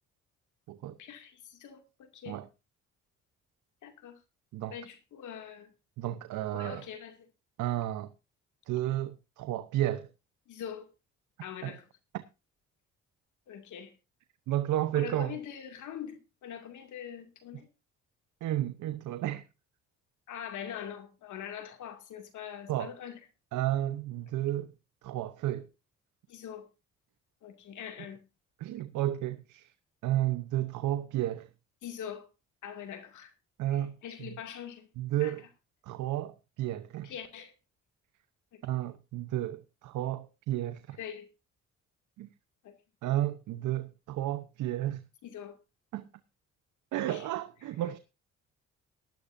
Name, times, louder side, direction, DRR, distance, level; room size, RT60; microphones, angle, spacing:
voice 1, 1.0-2.4 3.8-4.2 4.7-5.7 6.5-7.3 10.5-10.9 11.4-11.9 13.5-14.0 14.9-17.7 20.3-23.2 26.3-26.7 27.4-28.3 31.8-32.3 32.6-33.3 33.7-34.9 35.2-35.5 37.0-37.5 38.5-38.6 41.0-41.3 42.6-42.7 45.2-45.6 46.9-47.3, left 9 dB, 75° left, 2.5 m, -43 dB
voice 2, 6.0-6.8 7.6-8.1 8.7-10.1 11.6-11.7 12.1-12.2 14.5-15.4 18.4-19.4 22.7-22.9 23.5-24.7 25.0-25.7 28.6-29.7 30.0-31.5 33.6-34.3 35.0-35.4 35.8-37.1 38.6-41.0 42.2-42.3 43.0-45.0 45.9-46.0 46.9-48.0, right 13 dB, 85° right, 1.0 m, -32 dB
18.5 x 11.5 x 2.7 m
cardioid pair, 90°, 30 cm